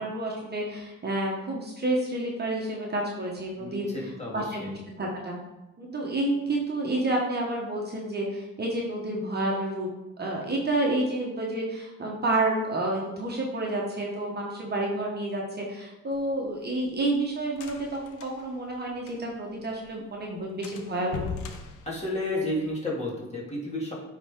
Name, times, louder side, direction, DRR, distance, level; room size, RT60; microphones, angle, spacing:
voice 1, 0.0-5.4 5.8-9.9 10.2-17.8 18.1-21.3, right 1 dB, 35° right, -2 dB, 1.3 m, -29 dB
voice 2, 3.6-4.7 21.9-23.9, left 1 dB, 20° left, -5 dB, 2.5 m, -32 dB
sound 1, 16.1-19.5 19.8-19.9 20.2-20.3 20.6-22.7, left 6 dB, 80° left, 0.8 m, -40 dB
8.9 x 3.9 x 3.7 m, 1.0 s
cardioid pair, 90°, 30 cm